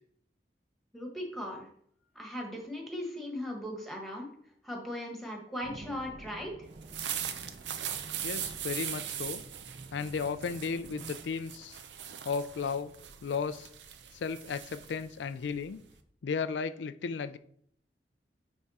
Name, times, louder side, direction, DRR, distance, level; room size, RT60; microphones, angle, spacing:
voice 1, 0.9-1.7 2.1-4.3 4.6-6.7, left 1 dB, ahead, 1 dB, 1.4 m, -38 dB
sound 1, 5.6-11.1, right 2 dB, 45° right, 0.5 m, -50 dB
sound 2, 6.7-16.0, right 9 dB, 80° right, 0.6 m, -40 dB
voice 2, 8.2-9.4 9.9-11.8 12.2-12.9 13.2-13.7 14.1-15.8 16.2-17.4, left 5 dB, 85° left, 12 dB, 0.4 m, -34 dB
9.5 x 3.6 x 4.2 m, 0.64 s
head